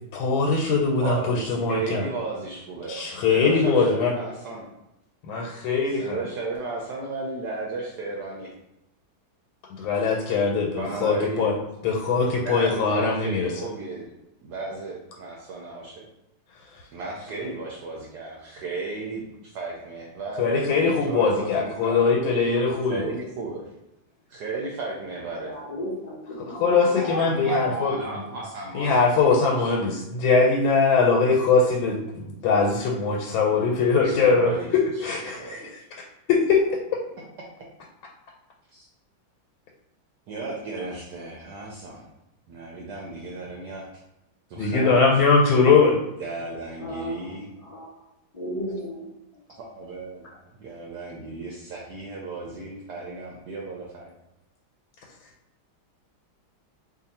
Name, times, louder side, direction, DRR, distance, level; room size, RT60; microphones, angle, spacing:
voice 1, 0.1-2.1 2.9-4.2 5.2-6.2 9.7-11.5 11.8-13.5 20.4-23.0 26.4-28.2 28.7-35.8 36.3-36.6 44.6-46.0, left 4 dB, 90° left, -1 dB, 1.4 m, -21 dB
voice 2, 1.0-4.7 5.9-8.5 10.8-11.5 12.4-14.1 14.4-16.1 16.9-22.0 22.9-23.7 24.3-25.5 27.0-29.8 33.5-33.7 34.0-34.7 35.0-35.7 38.7-38.9 40.3-42.0 42.5-43.8 44.5-45.0 46.2-47.5 49.6-50.3 50.6-54.1, right 3 dB, 70° right, -2 dB, 1.0 m, -34 dB
voice 3, 25.4-26.2 26.5-27.9 46.8-47.2 47.7-47.9 48.3-49.0, equal, 70° left, -6 dB, 0.3 m, -33 dB
2.8 x 2.6 x 4.0 m, 0.93 s
omnidirectional pair, 2.1 m